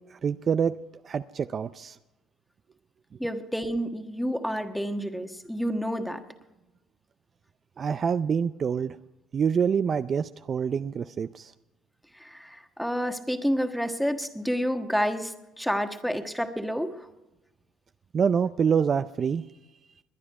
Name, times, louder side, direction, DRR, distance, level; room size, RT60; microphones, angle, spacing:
voice 1, 0.1-0.7 1.0-2.0 7.8-9.0 9.3-11.5 18.1-19.4, right 7 dB, 45° right, 12 dB, 0.4 m, -26 dB
voice 2, 3.2-6.2 12.1-16.9, equal, ahead, 6 dB, 1.4 m, -29 dB
21.5 x 9.9 x 4.8 m, 1.0 s
supercardioid pair, 80°, 0 cm